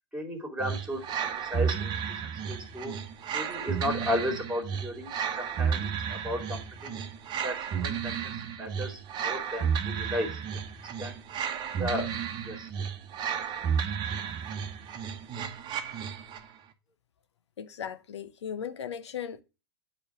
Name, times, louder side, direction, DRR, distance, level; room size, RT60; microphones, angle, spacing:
voice 1, 0.1-2.2 2.5-2.9 3.3-5.1 5.4-7.0 7.4-10.4 11.0-11.2 11.8-12.1 12.4-12.7, left 1 dB, 5° right, 2.6 m, -34 dB
sound 1, 0.6-16.5, right 7 dB, 30° right, 1.1 m, -33 dB
voice 2, 17.6-19.4, left 8 dB, 80° left, 0.7 m, -37 dB
8.7 x 3.2 x 5.9 m
hypercardioid pair, 110°, 14 cm